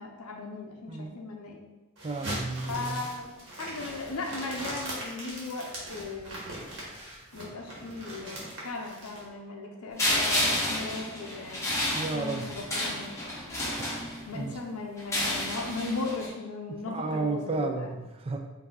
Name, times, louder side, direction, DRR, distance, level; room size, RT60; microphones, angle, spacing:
voice 1, 0.0-1.7 2.7-6.5 7.3-13.1 14.3-17.9, left 3 dB, 85° left, 0 dB, 0.6 m, -37 dB
voice 2, 0.9-1.2 2.0-3.0 11.9-12.4 14.3-14.6 16.9-18.4, right 3 dB, 25° right, 4 dB, 0.4 m, -32 dB
sound 1, 2.0-9.2, right 1 dB, 55° right, 1.5 m, -40 dB
sound 2, 10.0-14.4 15.0-16.3, left 1 dB, 15° left, 1.0 m, -30 dB
4.9 x 2.6 x 3.9 m, 1.1 s
head